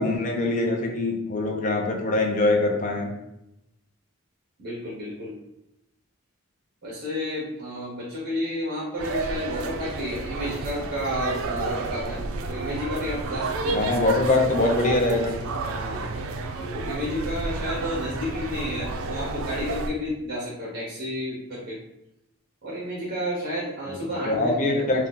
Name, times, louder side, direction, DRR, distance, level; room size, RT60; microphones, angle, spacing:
voice 1, 0.0-3.1 13.7-15.3 24.3-25.1, left 2 dB, 40° left, 1 dB, 0.5 m, -23 dB
voice 2, 4.6-5.4 6.8-12.2 12.5-13.9 15.7-16.1 16.7-21.8 22.6-24.9, equal, 50° right, -7 dB, 0.8 m, -31 dB
sound 1, 9.0-19.9, right 3 dB, 80° right, 0.4 m, -31 dB
2.7 x 2.3 x 3.6 m, 0.84 s
head